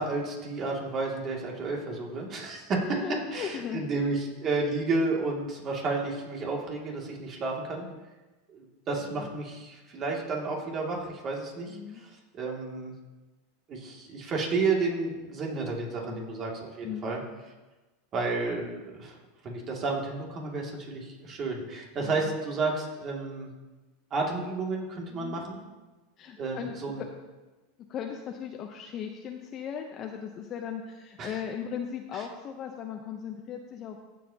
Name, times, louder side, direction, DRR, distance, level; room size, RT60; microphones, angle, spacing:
voice 1, 0.0-3.0 3.3-7.9 8.5-12.9 13.7-17.2 18.1-19.2 19.4-23.5 24.1-25.6 26.4-27.0 31.2-31.3, right 3 dB, 35° right, -1 dB, 2.4 m, -31 dB
voice 2, 2.8-4.1 9.0-9.3 11.7-12.0 16.0-16.3 16.8-17.1 22.0-22.3 25.1-25.4 26.2-27.1 27.8-34.0, left 8 dB, 40° left, 3 dB, 0.7 m, -38 dB
15.0 x 7.4 x 2.9 m, 1.2 s
supercardioid pair, 115°, 0 cm